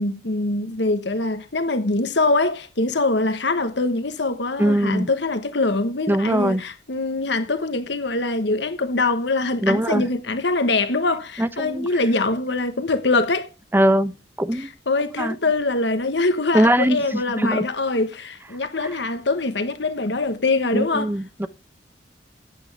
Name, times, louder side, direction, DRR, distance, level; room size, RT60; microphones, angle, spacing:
voice 1, 0.0-13.5 14.5-21.1, left 2 dB, 70° left, 1.3 m, -23 dB
voice 2, 4.6-5.1 6.1-6.6 9.6-10.1 11.4-11.9 13.7-14.7 15.2-15.4 16.5-17.7 20.7-21.5, right 1 dB, 10° right, 0.8 m, -21 dB
15.0 x 8.8 x 3.5 m
head